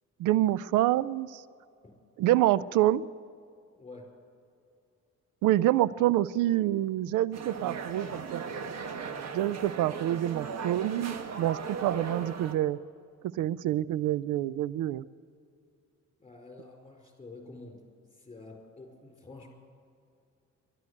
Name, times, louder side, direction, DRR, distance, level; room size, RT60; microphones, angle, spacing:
voice 1, 0.2-1.4 2.2-3.1 5.4-8.4 9.3-12.8 13.3-15.0, right 14 dB, 80° right, 20 dB, 0.4 m, -27 dB
sound 1, 7.3-12.5, right 5 dB, 60° right, 1.4 m, -37 dB
voice 2, 16.2-17.8 18.1-19.5, left 3 dB, 20° left, 2 dB, 4.6 m, -48 dB
12.5 x 12.0 x 9.7 m, 2.5 s
cardioid pair, 90°, 30 cm